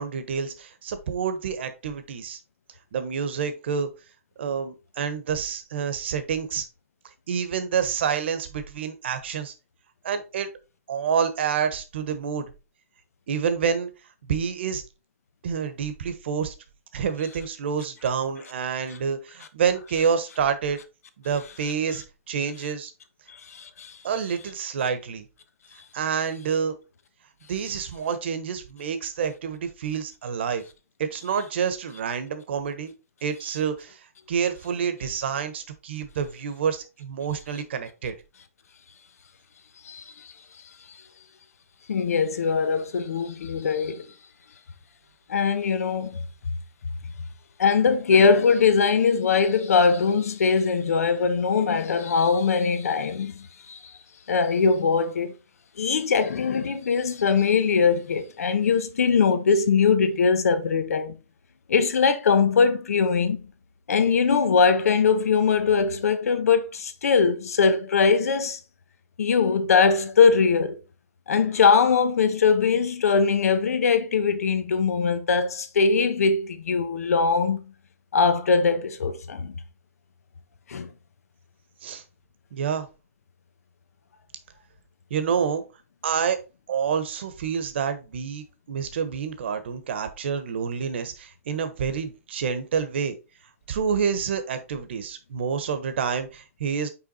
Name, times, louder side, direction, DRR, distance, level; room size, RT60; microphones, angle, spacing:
voice 1, 0.0-2.4 2.9-3.9 4.4-6.7 7.3-9.5 10.0-10.5 10.9-12.5 13.3-13.9 14.3-14.8 15.4-16.5 16.9-20.8 21.2-22.9 24.0-25.2 25.9-26.8 27.5-30.6 31.0-32.9 33.2-38.1 81.8-82.0 82.5-82.9 85.1-85.6 86.0-86.4 86.7-93.1 93.7-96.9, right 7 dB, 50° right, 1.2 m, -28 dB
voice 2, 23.3-24.0 39.8-40.0 41.9-44.1 45.3-46.2 47.6-53.9 54.3-55.3 55.8-61.2 61.7-63.4 63.9-68.6 69.2-70.8 71.3-77.6 78.1-79.5 80.7-80.9, left 5 dB, 85° left, 1.2 m, -21 dB
5.8 x 4.9 x 4.0 m
hypercardioid pair, 180°, 8 cm